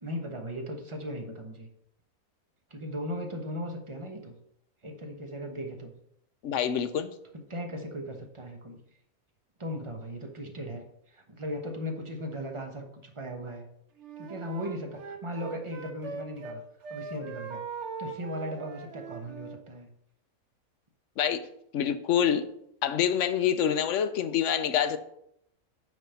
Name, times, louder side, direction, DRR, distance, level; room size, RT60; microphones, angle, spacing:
voice 1, 0.0-1.7 2.7-4.4 4.8-5.9 7.3-8.8 9.6-13.7 14.2-16.6 16.9-17.6 18.0-19.9, equal, 25° right, 1.0 m, -37 dB
voice 2, 6.4-7.1 21.2-21.4 21.7-22.4 22.8-25.0, left 9 dB, 65° left, 0.9 m, -26 dB
Wind instrument woodwind instrument, 14.0-16.6 16.8-19.6, right 4 dB, 60° right, 1.1 m, -41 dB
9.3 x 3.5 x 5.6 m
omnidirectional pair, 1.5 m